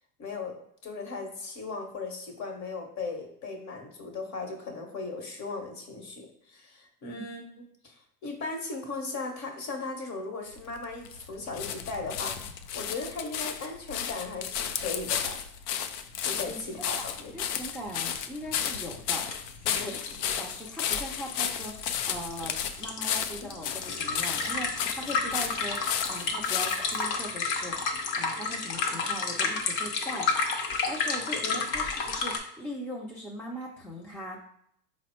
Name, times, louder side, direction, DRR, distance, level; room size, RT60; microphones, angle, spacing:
voice 1, 0.2-0.5 0.8-15.4 16.2-17.3 19.7-20.0 31.3-31.6, left 3 dB, 35° left, 3 dB, 1.1 m, -37 dB
sound 1, 10.5-27.1 27.8-27.9, left 8 dB, 80° left, 0.5 m, -33 dB
sound 2, 16.5-16.6 16.9-17.0 18.7-18.8 19.3-19.4 19.7-32.4, left 4 dB, 65° left, 0.9 m, -31 dB
voice 2, 17.3-19.3 19.6-20.1 20.4-30.3 30.9-34.4, equal, 5° left, -2 dB, 0.5 m, -40 dB
4.0 x 2.1 x 4.3 m, 0.70 s
hypercardioid pair, 100°, 47 cm